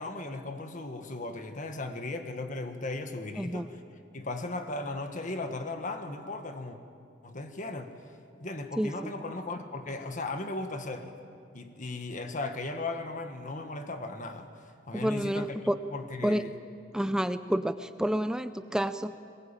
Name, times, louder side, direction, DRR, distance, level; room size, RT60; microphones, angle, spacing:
voice 1, 0.0-3.8 4.1-6.8 7.2-7.9 8.4-11.1 11.5-14.5 14.9-16.5, left 2 dB, 45° left, 6 dB, 1.6 m, -37 dB
voice 2, 8.8-9.1 14.9-15.8 16.2-16.4 16.9-19.2, equal, 5° right, 10 dB, 0.5 m, -29 dB
23.0 x 21.0 x 8.9 m, 2.4 s
head